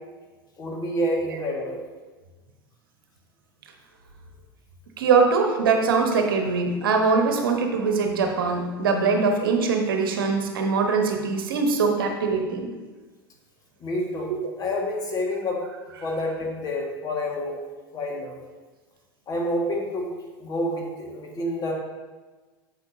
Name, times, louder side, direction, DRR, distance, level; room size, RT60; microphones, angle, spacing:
voice 1, 0.6-1.8 5.3-5.4 13.8-15.6 16.0-17.6 17.9-18.4 19.3-20.1 20.4-21.7, left 1 dB, 30° left, -1 dB, 1.7 m, -28 dB
voice 2, 5.0-12.7, right 4 dB, 70° right, 4 dB, 1.0 m, -22 dB
8.2 x 7.2 x 2.7 m, 1.3 s
figure-of-eight pair, 80°, 12 cm